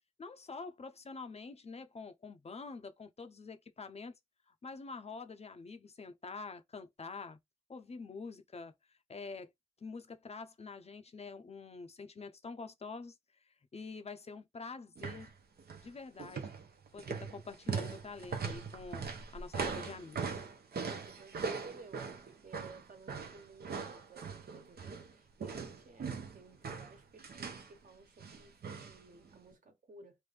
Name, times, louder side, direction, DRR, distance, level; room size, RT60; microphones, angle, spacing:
voice 1, 0.2-4.1 4.6-7.4 7.7-8.7 9.1-9.5 9.8-13.1 13.7-15.3 15.8-16.5 16.9-20.4, left 4 dB, 40° left, 0.5 m, -46 dB
sound 1, 15.0-15.3 15.6-15.9 16.2-25.1 25.4-27.7 28.2-29.0 29.3-29.4, right 5 dB, 80° right, 0.9 m, -40 dB
voice 2, 20.8-30.1, right 3 dB, 55° right, 1.2 m, -56 dB
3.2 x 2.6 x 3.4 m
wide cardioid pair, 130°, 16 cm